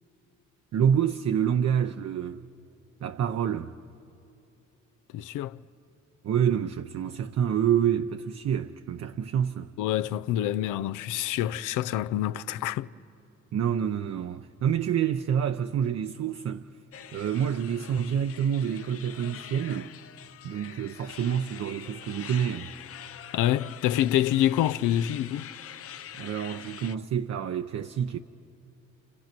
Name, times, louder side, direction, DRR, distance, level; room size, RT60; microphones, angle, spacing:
voice 1, 0.7-2.4 3.0-3.7 6.2-9.7 13.5-16.7 17.1-19.9 20.4-22.7 26.2-28.2, right 8 dB, 55° right, 0.7 m, -27 dB
voice 2, 5.1-5.6 9.8-12.9 23.3-25.5, left 12 dB, 90° left, 0.6 m, -26 dB
sound 1, 16.9-27.0, left 10 dB, 50° left, 0.6 m, -45 dB
30.0 x 28.5 x 6.0 m
cardioid pair, 90°, 30 cm